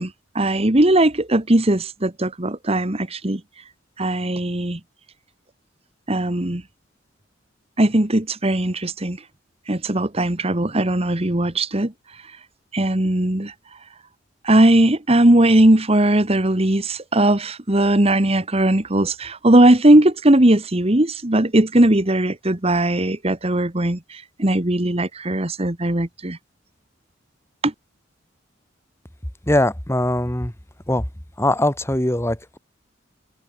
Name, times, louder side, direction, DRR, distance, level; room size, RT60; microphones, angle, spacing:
voice 1, 0.0-3.4 4.0-4.8 6.1-6.6 7.8-9.2 9.7-11.9 12.7-13.5 14.4-26.4 27.6-27.7, right 1 dB, 30° right, 1.6 m, -18 dB
voice 2, 29.5-30.5 30.9-31.1 31.4-32.6, left 1 dB, 15° left, 2.1 m, -21 dB
head